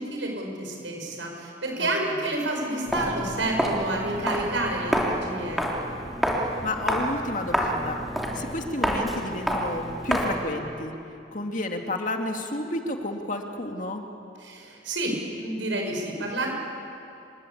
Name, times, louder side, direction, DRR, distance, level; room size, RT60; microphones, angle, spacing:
voice 1, 0.0-5.7 14.4-16.5, right 2 dB, 80° right, 1 dB, 6.7 m, -29 dB
voice 2, 1.8-2.2 6.6-10.9 11.3-14.0, left 1 dB, 45° left, 3 dB, 2.2 m, -31 dB
Walk footsteps, 2.8-10.5, equal, ahead, 3.3 m, -28 dB
27.5 x 22.0 x 8.7 m, 2.7 s
head